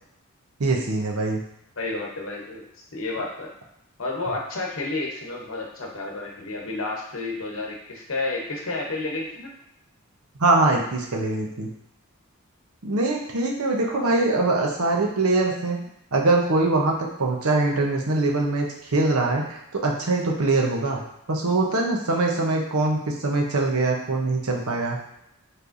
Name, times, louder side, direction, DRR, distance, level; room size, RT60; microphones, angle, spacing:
voice 1, 0.6-1.4 10.4-11.7 12.8-15.8 16.1-18.7 18.9-21.0 21.3-25.0, right 2 dB, 85° right, 0 dB, 0.8 m, -23 dB
voice 2, 1.8-2.6 2.9-3.5 4.0-9.5 13.8-14.2, left 2 dB, 60° left, -1 dB, 0.9 m, -31 dB
4.8 x 3.3 x 2.6 m, 0.78 s
head